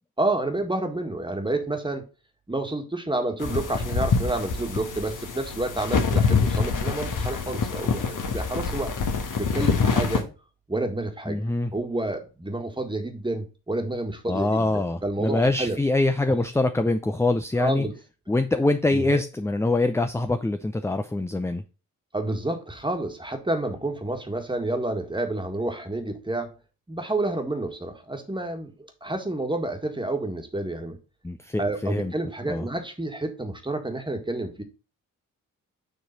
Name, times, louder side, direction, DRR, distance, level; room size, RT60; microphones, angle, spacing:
voice 1, 0.2-2.0 2.5-8.9 9.4-10.3 10.7-11.4 11.7-15.8 17.6-17.9 18.9-19.2 22.1-26.5 26.9-31.0 31.6-34.6, right 2 dB, 15° right, 1.7 m, -29 dB
sound 1, 3.4-10.2, left 5 dB, 60° left, 1.4 m, -25 dB
voice 2, 11.3-11.7 14.3-17.9 18.3-21.6 31.2-32.1 32.4-32.7, left 2 dB, 10° left, 0.5 m, -24 dB
6.8 x 3.1 x 5.8 m
supercardioid pair, 50°, 35 cm